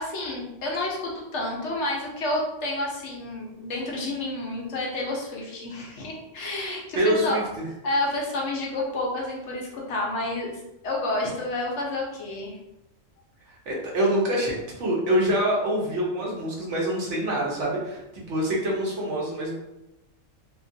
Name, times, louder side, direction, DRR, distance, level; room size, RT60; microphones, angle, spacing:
voice 1, 0.0-12.5, left 2 dB, 65° left, -2 dB, 0.9 m, -30 dB
voice 2, 6.9-7.4 13.7-19.5, equal, 65° right, -3 dB, 1.0 m, -25 dB
2.8 x 2.4 x 2.6 m, 0.92 s
omnidirectional pair, 1.4 m